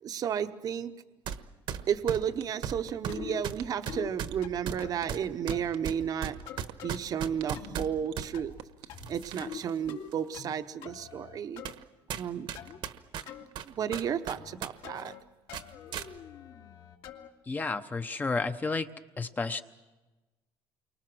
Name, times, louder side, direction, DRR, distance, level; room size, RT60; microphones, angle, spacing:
voice 1, 0.0-0.9 1.9-6.4 6.8-8.5 9.0-11.6 12.1-12.5 13.6-15.1, right 8 dB, 40° right, 9 dB, 1.0 m, -32 dB
sound 1, 1.3-1.4 1.7-8.3 8.9-9.7 10.1-10.2 10.9-11.0 11.6-11.8 12.1-14.7 15.0-15.1 15.5-16.1, right 9 dB, 55° right, 1.3 m, -37 dB
sound 2, 1.9-2.0 2.4-3.1 3.6-3.9 4.3-5.1 5.5-5.8 6.2-7.0 7.4-7.7 8.1-8.9 9.3-9.4, right 14 dB, 80° right, 1.1 m, -46 dB
sound 3, 3.1-3.5 3.9-4.1 4.4-5.1 5.5-5.8 6.5-7.0 7.5-7.9 8.3-8.6 8.9-9.6 9.9-10.5 10.8-11.7 12.6-12.8 13.3-13.5 13.9-14.6 14.8-15.2 15.5-17.3, left 9 dB, 65° left, 2.6 m, -44 dB
voice 2, 17.5-18.9 19.2-19.6, left 3 dB, 20° left, 9 dB, 0.9 m, -31 dB
29.0 x 24.5 x 6.2 m, 1.2 s
cardioid pair, 145°, 10 cm